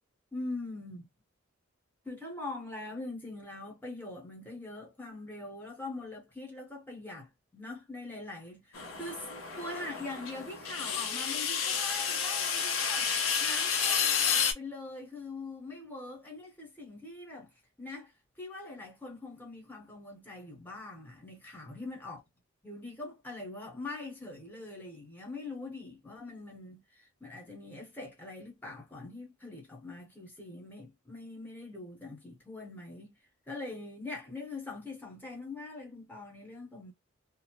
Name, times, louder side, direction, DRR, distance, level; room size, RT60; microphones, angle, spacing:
voice 1, 0.3-1.1 2.0-9.3 9.6-13.1 13.4-17.5 17.8-18.1 18.4-22.2 22.6-33.2 33.5-36.9, left 2 dB, 10° left, 1.1 m, -43 dB
sound 1, 8.7-14.5, left 6 dB, 80° left, 0.7 m, -31 dB
2.7 x 2.0 x 3.0 m
head